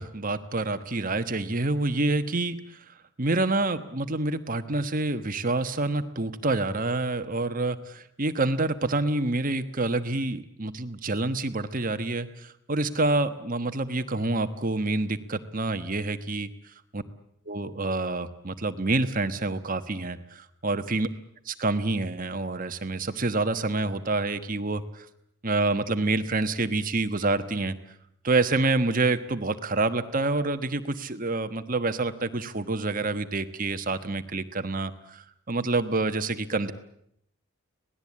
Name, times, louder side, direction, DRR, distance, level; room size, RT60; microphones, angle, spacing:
voice 1, 0.0-2.6 3.2-16.5 16.9-17.0 17.5-21.1 21.5-25.0 25.4-27.7 28.2-36.7, right 2 dB, 40° right, 9 dB, 1.3 m, -27 dB
26.0 x 18.5 x 8.6 m, 0.74 s
head